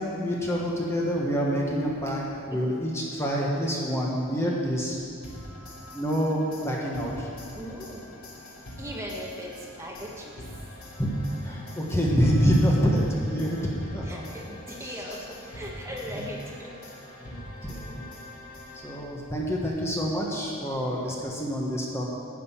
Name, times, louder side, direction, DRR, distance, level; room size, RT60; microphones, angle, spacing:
voice 1, 0.0-5.0 5.9-7.3 11.0-11.1 11.4-13.6 13.9-14.2 14.8-14.9 17.2-18.0 18.7-22.0, equal, 10° left, -3 dB, 1.3 m, -27 dB
sound 1, 5.2-19.4, left 1 dB, 75° left, 2.3 m, -45 dB
voice 2, 7.5-8.0 8.8-9.5 9.8-10.4 14.0-16.7, equal, 15° right, -2 dB, 1.3 m, -38 dB
10.0 x 9.2 x 5.7 m, 2.6 s
head